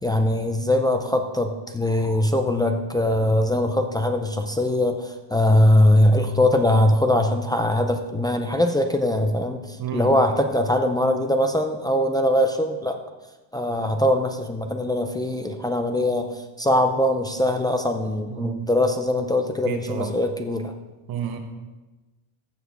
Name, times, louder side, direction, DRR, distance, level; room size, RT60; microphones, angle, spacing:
voice 1, 0.0-13.0 13.5-20.7, left 1 dB, 10° left, 4 dB, 0.4 m, -21 dB
voice 2, 9.8-10.1 18.4-18.6 19.7-20.1 21.1-21.4, right 8 dB, 50° right, 5 dB, 1.1 m, -30 dB
14.5 x 7.0 x 3.6 m, 1.2 s
cardioid pair, 135°, 45 cm